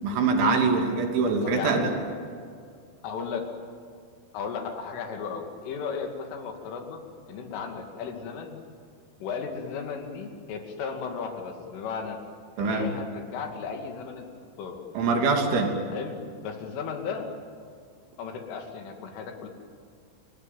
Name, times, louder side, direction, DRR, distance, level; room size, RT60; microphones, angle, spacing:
voice 1, 0.0-1.9 12.6-12.9 15.0-15.8, right 4 dB, 70° right, 2 dB, 5.2 m, -23 dB
voice 2, 1.4-1.9 3.0-3.5 4.3-7.0 7.3-8.6 9.2-12.2 12.6-14.3 14.6-14.8 15.9-17.3 18.2-19.5, left 6 dB, 85° left, 3 dB, 5.1 m, -35 dB
29.0 x 19.5 x 9.3 m, 2.2 s
omnidirectional pair, 5.5 m